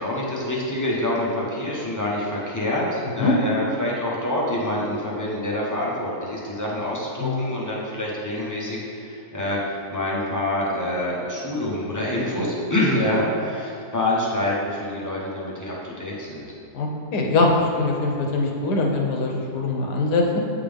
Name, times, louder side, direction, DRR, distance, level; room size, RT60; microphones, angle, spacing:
voice 1, 0.0-16.4, left 1 dB, 20° left, -5 dB, 0.6 m, -26 dB
voice 2, 16.7-17.5 17.8-20.4, left 3 dB, 85° left, 0 dB, 1.4 m, -23 dB
8.7 x 3.7 x 3.5 m, 2.7 s
omnidirectional pair, 1.7 m